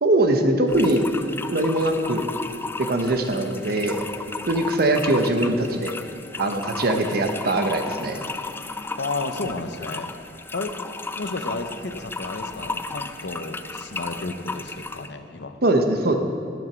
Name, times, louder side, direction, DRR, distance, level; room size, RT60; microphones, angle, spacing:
voice 1, 0.0-1.0 1.5-2.3 2.8-4.0 4.5-5.9 6.4-8.2 15.6-16.2, right 1 dB, 60° right, 5 dB, 0.9 m, -21 dB
sound 1, 0.7-15.1, left 3 dB, 15° left, 0.3 m, -34 dB
voice 2, 9.0-10.1 10.5-10.7 11.1-15.6, left 3 dB, 70° left, 7 dB, 0.8 m, -32 dB
11.0 x 7.3 x 6.1 m, 2.4 s
head